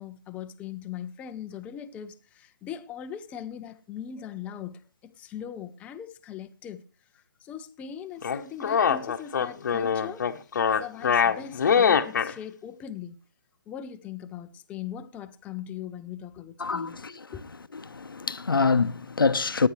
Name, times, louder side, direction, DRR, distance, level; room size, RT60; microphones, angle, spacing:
voice 1, 0.0-6.8 7.1-10.3 10.8-13.2 13.7-17.0 17.3-17.4, left 9 dB, 10° left, 0.6 m, -40 dB
sound 1, 8.2-12.3, left 7 dB, 60° left, 1.0 m, -23 dB
voice 2, 16.6-17.1 17.9-19.7, left 4 dB, 90° left, 0.9 m, -25 dB
18.5 x 9.5 x 3.2 m
hypercardioid pair, 150°, 11 cm